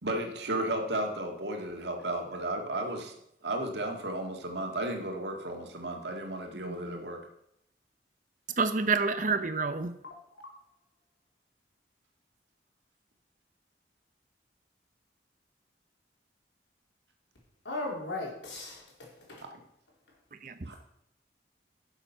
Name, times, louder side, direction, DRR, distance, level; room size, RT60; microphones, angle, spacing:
voice 1, 0.0-3.1 3.4-7.2 20.7-20.8, right 1 dB, 75° right, 2 dB, 2.0 m, -34 dB
voice 2, 6.6-7.0 8.6-9.9 20.4-20.7, right 4 dB, 45° right, 11 dB, 0.7 m, -29 dB
voice 3, 17.7-19.4, left 2 dB, 85° left, -2 dB, 3.7 m, -38 dB
12.0 x 7.1 x 5.6 m, 0.79 s
head